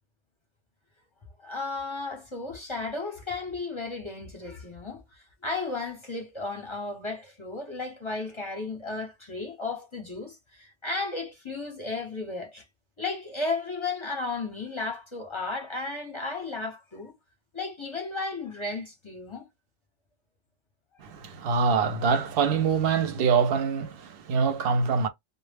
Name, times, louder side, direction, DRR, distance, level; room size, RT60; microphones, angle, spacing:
voice 1, 1.4-12.6 13.0-17.2 17.5-19.5, left 3 dB, 30° left, 0.6 m, -34 dB
voice 2, 21.0-25.1, right 5 dB, 60° right, 0.7 m, -24 dB
2.0 x 2.0 x 3.3 m
omnidirectional pair, 1.3 m